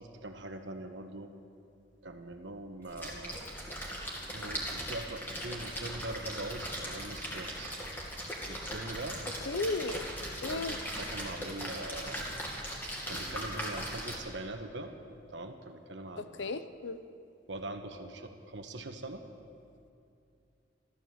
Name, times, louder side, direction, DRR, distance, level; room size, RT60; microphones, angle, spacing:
voice 1, 0.0-1.3 2.0-3.5 4.3-7.8 8.5-9.2 10.5-12.3 12.8-15.0 15.3-16.5 17.5-19.2, right 2 dB, 90° right, 6 dB, 1.3 m, -42 dB
Splash splatter, 2.8-14.2, equal, 10° left, 2.3 m, -39 dB
voice 2, 9.5-10.1 10.4-10.7 16.2-17.0, left 3 dB, 90° left, 11 dB, 0.7 m, -34 dB
14.5 x 13.0 x 7.5 m, 2.6 s
head